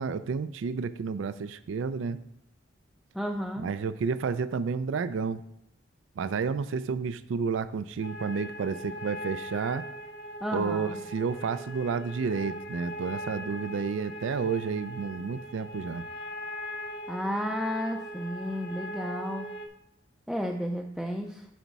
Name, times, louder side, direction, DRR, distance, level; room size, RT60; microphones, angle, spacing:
voice 1, 0.0-2.2 3.6-5.4 6.2-9.8 10.5-16.1, right 5 dB, 85° right, 13 dB, 0.4 m, -31 dB
voice 2, 3.1-3.7 10.4-11.0 17.1-19.5 20.3-21.5, equal, ahead, 0 dB, 0.4 m, -32 dB
sound 1, 8.0-19.7, equal, 60° left, 1.2 m, -40 dB
9.2 x 4.1 x 4.6 m, 0.78 s
head